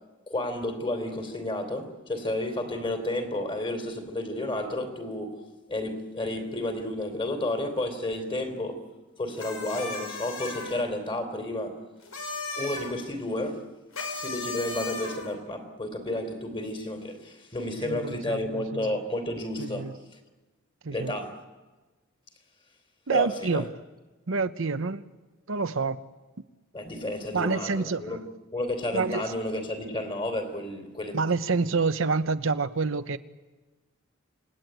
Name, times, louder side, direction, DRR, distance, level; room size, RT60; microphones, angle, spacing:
voice 1, 0.3-5.4 5.7-8.8 9.2-11.8 12.6-13.6 14.2-19.9 20.9-21.3 23.1-23.6 26.7-28.2 28.5-31.2, left 1 dB, 25° left, 3.7 m, -31 dB
sound 1, 9.4-10.8 12.0-12.9 13.9-15.3, left 3 dB, 90° left, 6.1 m, -36 dB
voice 2, 17.8-18.9 19.6-19.9 20.8-21.1 23.1-23.7 24.3-25.0 25.5-26.0 27.3-28.2 28.9-29.2 31.1-33.2, right 4 dB, 65° right, 0.8 m, -27 dB
28.5 x 20.0 x 9.2 m
head